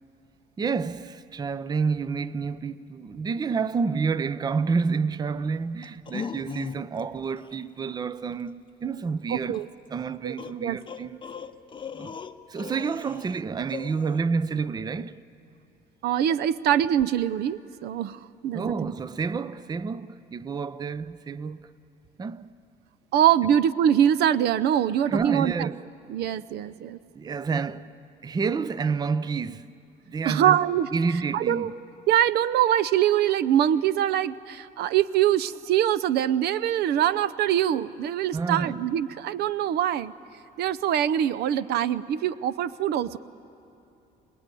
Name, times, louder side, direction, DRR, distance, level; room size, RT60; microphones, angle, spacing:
voice 1, 0.6-9.6 9.9-11.2 11.9-12.2 12.5-15.2 18.5-21.6 22.2-22.5 23.4-23.5 25.1-25.9 27.1-28.0 28.2-29.7 30.1-30.6 30.9-31.7 38.3-38.8, right 5 dB, 25° right, 0.5 m, -29 dB
sound 1, 5.8-7.0 7.4-7.6 9.5-9.6 10.4-13.4 13.7-14.2, left 6 dB, 30° left, 0.7 m, -38 dB
voice 2, 9.3-9.7 10.2-10.3 10.6-10.8 16.0-18.9 23.1-25.7 26.1-27.0 30.2-30.9 31.3-31.7 32.1-40.1 40.6-43.2, right 10 dB, 75° right, 0.6 m, -23 dB
27.0 x 19.5 x 9.1 m
cardioid pair, 110°, 17 cm